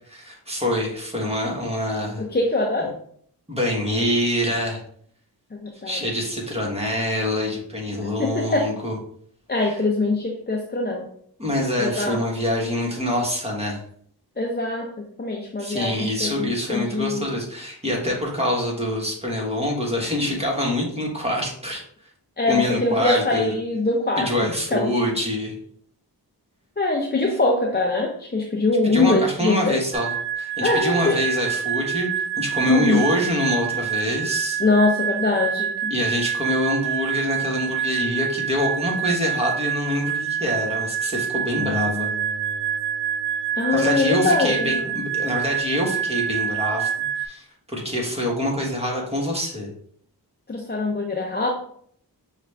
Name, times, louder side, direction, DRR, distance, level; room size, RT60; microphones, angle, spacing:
voice 1, 0.0-2.2 3.5-4.8 5.8-9.0 11.4-13.8 15.6-21.8 22.5-23.5 24.2-25.5 28.8-30.1 30.4-34.6 35.9-42.1 43.7-49.7, left 1 dB, 15° right, -2 dB, 1.3 m, -25 dB
voice 2, 2.2-3.0 5.5-6.0 8.2-8.7 9.5-11.1 11.8-12.2 14.4-17.3 22.4-24.3 24.7-24.9 26.8-29.8 30.6-31.2 32.7-33.1 34.6-35.9 43.6-44.8 50.5-51.5, left 3 dB, 25° left, 0 dB, 0.5 m, -23 dB
sound 1, 29.9-47.3, right 9 dB, 80° right, 0.7 m, -27 dB
sound 2, 41.6-44.2, left 4 dB, 30° right, 1.1 m, -35 dB
5.8 x 2.4 x 3.3 m, 0.63 s
wide cardioid pair, 80°, 40 cm